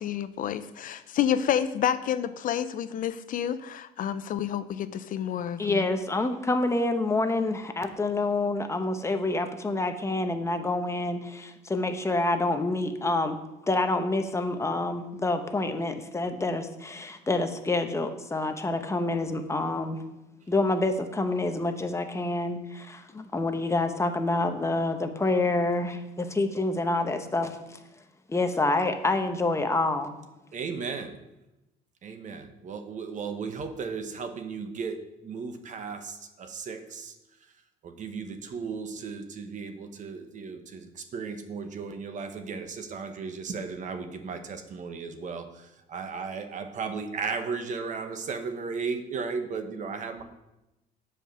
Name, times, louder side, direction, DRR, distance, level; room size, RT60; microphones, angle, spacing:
voice 1, 0.0-5.9, left 9 dB, 55° left, 12 dB, 0.5 m, -29 dB
voice 2, 5.6-20.0 20.5-27.8 28.3-30.2, left 2 dB, 15° left, 6 dB, 0.8 m, -27 dB
voice 3, 30.5-31.2 32.0-37.5 37.8-50.2, right 5 dB, 50° right, 7 dB, 1.0 m, -35 dB
7.7 x 4.9 x 6.6 m, 0.94 s
cardioid pair, 110°, 17 cm